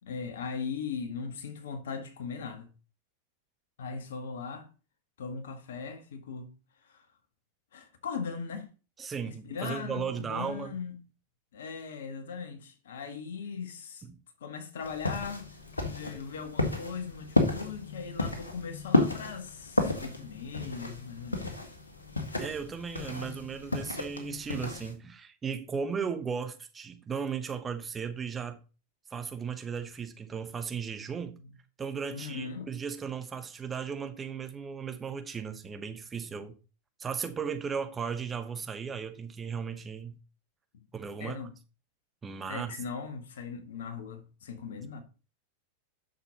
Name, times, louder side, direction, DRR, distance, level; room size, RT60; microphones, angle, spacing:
voice 1, 0.0-2.7 3.8-4.7 5.2-6.5 6.8-7.0 7.7-8.7 9.3-11.0 11.5-14.0 14.4-15.5 15.8-21.5 32.1-32.7 40.7-40.8 41.2-41.5 42.5-45.0, left 5 dB, 60° left, 1.6 m, -39 dB
voice 2, 9.0-10.7 14.0-14.2 22.4-28.6 29.1-31.4 31.8-36.6 37.0-40.2 40.9-41.4 42.2-42.7, right 6 dB, 20° right, 1.0 m, -36 dB
sound 1, 14.8-24.9, left 2 dB, 75° left, 1.7 m, -32 dB
10.0 x 6.6 x 3.0 m
figure-of-eight pair, 90°, 0 cm